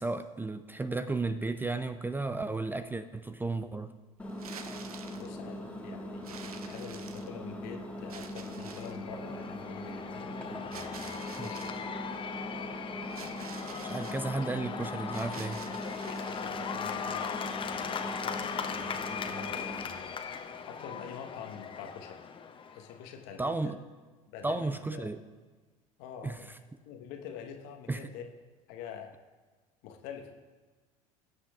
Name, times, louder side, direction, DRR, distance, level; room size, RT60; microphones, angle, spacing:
voice 1, 0.0-3.9 11.4-11.5 13.8-15.6 23.4-23.8 24.4-25.2 26.2-26.4 27.9-28.0, right 3 dB, 10° right, 11 dB, 0.4 m, -33 dB
Engine, 4.2-19.8, equal, 5° left, 1.6 m, -41 dB
sound 1, 4.3-5.3 6.2-7.5 8.1-9.0 10.7-11.8 13.1-14.2 15.1-16.6, right 6 dB, 85° right, 0.6 m, -48 dB
voice 2, 5.1-11.7 14.4-14.8 16.3-22.2 22.7-23.7 24.3-25.1 26.0-26.5 26.9-28.3 28.7-29.1 29.8-30.3, left 7 dB, 60° left, 4 dB, 1.2 m, -46 dB
Cheering / Applause / Crowd, 8.3-23.0, left 6 dB, 30° left, 0.7 m, -39 dB
19.0 x 8.0 x 2.4 m, 1.3 s
hypercardioid pair, 75°, 18 cm